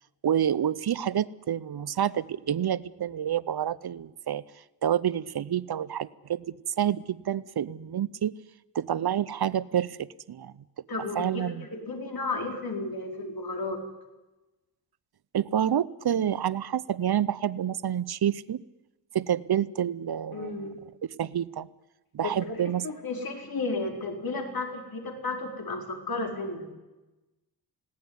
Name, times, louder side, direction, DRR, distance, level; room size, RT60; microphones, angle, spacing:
voice 1, 0.2-4.4 4.8-8.4 8.7-10.5 11.1-11.6 15.3-18.6 19.1-20.5 21.2-21.7 22.1-22.8, right 10 dB, 70° right, 19 dB, 0.7 m, -28 dB
voice 2, 10.9-13.8 20.3-20.8 22.2-22.6 22.8-26.7, left 3 dB, 60° left, 3 dB, 4.6 m, -33 dB
20.0 x 17.5 x 9.8 m, 1.1 s
wide cardioid pair, 120°, 40 cm